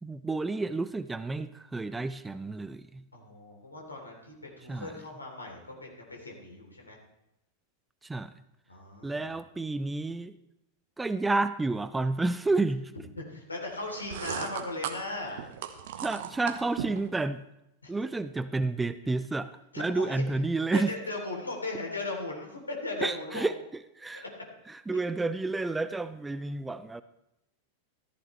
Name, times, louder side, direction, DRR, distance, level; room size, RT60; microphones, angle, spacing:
voice 1, 0.0-3.0 4.7-4.9 8.0-8.3 9.0-10.4 11.0-12.9 16.0-17.4 17.9-19.5 19.8-20.9 23.0-24.2 24.7-27.0, right 3 dB, 10° right, 13 dB, 0.5 m, -30 dB
voice 2, 3.1-7.0 8.7-9.4 13.2-15.4 17.8-17.9 19.7-20.1 20.7-23.5, left 2 dB, 80° left, 0 dB, 3.3 m, -37 dB
sound 1, 13.8-17.1, right 9 dB, 55° right, 1.0 m, -38 dB
14.0 x 14.0 x 3.2 m, 0.86 s
figure-of-eight pair, 90°, 0 cm